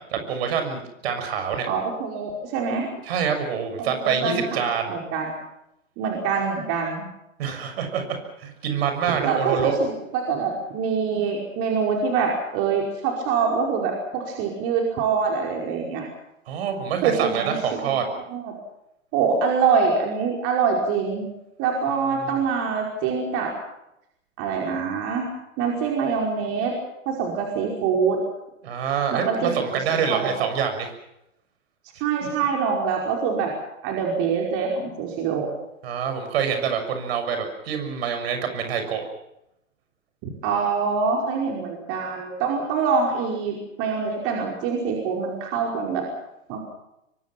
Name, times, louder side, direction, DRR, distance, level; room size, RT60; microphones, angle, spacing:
voice 1, 0.1-1.7 3.1-5.0 7.4-9.7 16.5-18.1 22.2-22.4 28.6-30.9 35.8-39.0, right 7 dB, 50° right, 6 dB, 6.7 m, -26 dB
voice 2, 1.7-2.9 3.8-4.6 4.9-5.3 6.0-7.0 9.2-16.0 17.0-18.0 18.3-18.6 19.1-21.2 21.6-23.5 24.4-25.3 25.6-26.8 27.1-28.2 29.1-30.3 32.0-33.5 33.8-35.5 40.2-46.0 46.5-46.6, right 5 dB, 35° right, 0 dB, 5.2 m, -25 dB
26.0 x 24.0 x 6.1 m, 0.84 s
figure-of-eight pair, 115°, 39 cm